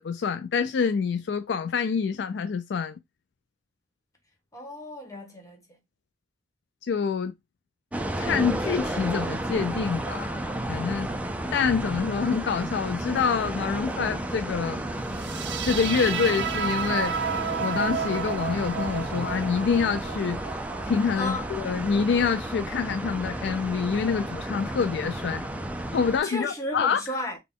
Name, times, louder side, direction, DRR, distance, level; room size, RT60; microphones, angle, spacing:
voice 1, 0.0-3.0 6.9-7.3 8.2-11.1 11.5-14.8 15.6-17.1 17.6-20.4 20.9-25.4 25.9-27.0, left 6 dB, 65° left, 0.3 m, -26 dB
voice 2, 4.5-5.8 21.2-21.5 26.2-27.4, left 1 dB, 15° left, 1.2 m, -34 dB
sound 1, 7.9-26.2, right 1 dB, 10° right, 0.4 m, -32 dB
sound 2, 15.1-22.2, right 7 dB, 70° right, 0.5 m, -32 dB
4.0 x 2.2 x 3.5 m
head